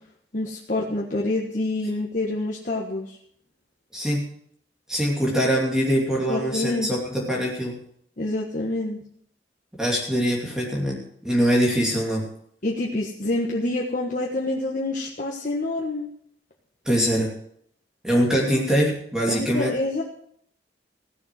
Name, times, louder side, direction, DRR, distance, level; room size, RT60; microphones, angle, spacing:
voice 1, 0.3-3.2 6.3-6.9 8.2-9.0 12.6-16.1 19.3-20.0, left 2 dB, 45° left, -2 dB, 1.5 m, -27 dB
voice 2, 3.9-4.3 4.9-7.8 9.8-12.3 16.8-17.3 18.0-19.7, equal, 5° right, -3 dB, 2.7 m, -23 dB
16.0 x 7.2 x 7.6 m, 0.67 s
head